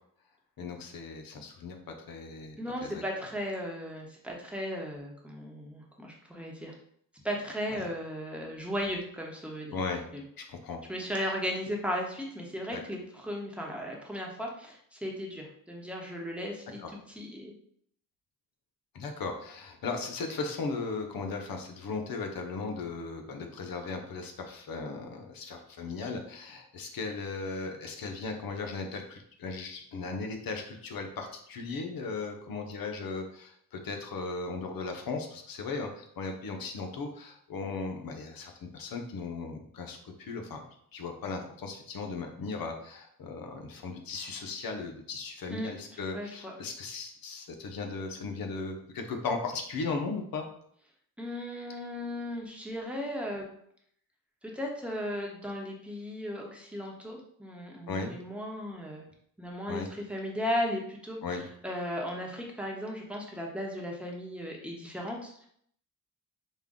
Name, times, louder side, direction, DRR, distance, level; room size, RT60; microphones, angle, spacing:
voice 1, 0.6-3.2 7.7-7.9 9.7-10.0 10.4-10.8 12.7-12.8 16.8-16.9 18.9-40.6 40.9-50.4 57.9-58.1 59.7-59.9 61.2-61.4, left 4 dB, 85° left, 3 dB, 0.8 m, -37 dB
voice 2, 2.6-6.7 7.2-9.8 10.1-10.2 10.9-17.5 45.5-46.5 51.2-53.5 54.4-59.0 59.4-61.2 61.6-65.5, equal, 5° right, -1 dB, 0.9 m, -36 dB
5.3 x 2.2 x 3.6 m, 0.66 s
wide cardioid pair, 110°, 34 cm